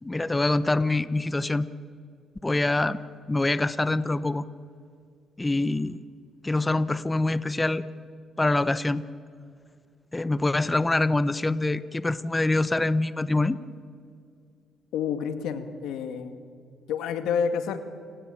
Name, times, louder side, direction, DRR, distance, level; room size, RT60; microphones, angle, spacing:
voice 1, 0.0-1.7 2.4-3.0 3.3-4.4 5.4-6.0 6.4-7.8 8.4-9.0 10.1-13.6, left 2 dB, 15° left, 15 dB, 0.9 m, -25 dB
voice 2, 14.9-16.4 16.9-17.8, left 7 dB, 85° left, 8 dB, 2.0 m, -29 dB
29.0 x 19.0 x 9.0 m, 2.3 s
cardioid pair, 90°, 0 cm